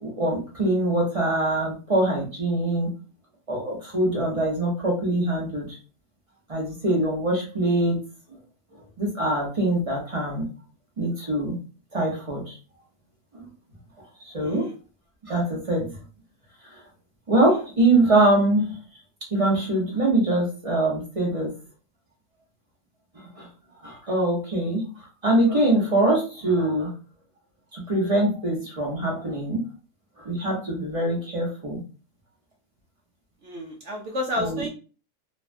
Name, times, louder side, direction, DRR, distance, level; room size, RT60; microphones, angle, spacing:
voice 1, 0.0-2.9 3.5-5.8 6.5-8.0 9.0-10.5 11.0-11.6 11.9-12.6 13.3-13.4 14.2-14.7 15.3-15.9 16.7-16.8 17.3-18.7 19.3-21.5 23.1-23.5 23.8-24.8 25.2-26.9 27.7-29.6 30.2-31.8 34.4-34.7, right 1 dB, 30° right, -3 dB, 0.7 m, -23 dB
voice 2, 33.4-34.7, left 1 dB, 60° right, -1 dB, 0.8 m, -30 dB
3.2 x 2.2 x 2.5 m, 0.35 s
omnidirectional pair, 1.7 m